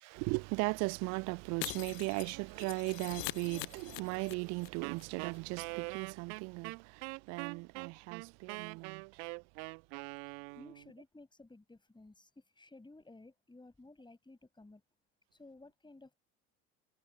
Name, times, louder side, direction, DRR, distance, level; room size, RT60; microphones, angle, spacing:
voice 1, 0.0-9.0, right 28 dB, 40° right, 0.4 m, -37 dB
Shatter, 1.6-4.7 4.9-5.0 5.3-5.4, left 38 dB, 55° left, 0.7 m, -43 dB
Wind instrument woodwind instrument, 4.8-10.9, right 36 dB, 55° right, 1.4 m, -43 dB
voice 2, 10.3-14.8 15.3-16.2, left 2 dB, 10° left, 5.8 m, -56 dB
figure-of-eight pair, 70°, 44 cm